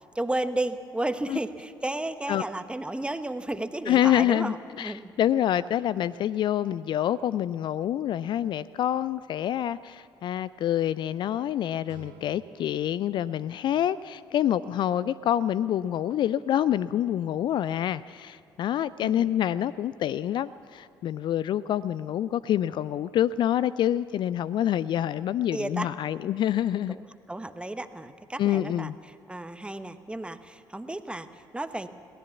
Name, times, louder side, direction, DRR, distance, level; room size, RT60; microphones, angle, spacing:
voice 1, 0.1-5.1 19.0-19.3 25.5-25.9 26.9-28.9 29.3-31.9, right 1 dB, 10° right, 11 dB, 1.2 m, -33 dB
voice 2, 3.9-27.0 28.4-28.9, left 11 dB, 50° left, 18 dB, 0.4 m, -27 dB
sound 1, 11.8-14.9, right 4 dB, 75° right, 2.1 m, -55 dB
22.0 x 17.0 x 7.1 m, 2.3 s
figure-of-eight pair, 45°, 10 cm